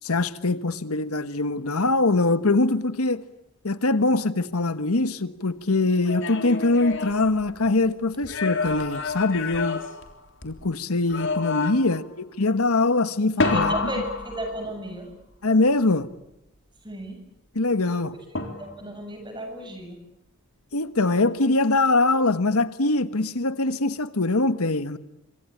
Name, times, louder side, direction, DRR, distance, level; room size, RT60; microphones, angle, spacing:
voice 1, 0.0-3.2 3.6-9.8 10.4-13.7 15.4-16.1 17.5-18.1 20.7-25.0, left 2 dB, 80° left, 1.4 m, -23 dB
sound 1, 5.9-7.8 8.2-10.6 11.1-12.1 13.4-15.0 18.3-19.0, left 4 dB, 55° left, 3.5 m, -29 dB
voice 2, 13.4-15.1 16.8-17.2 18.3-20.0, right 1 dB, 20° right, 7.4 m, -34 dB
26.0 x 25.5 x 8.7 m
head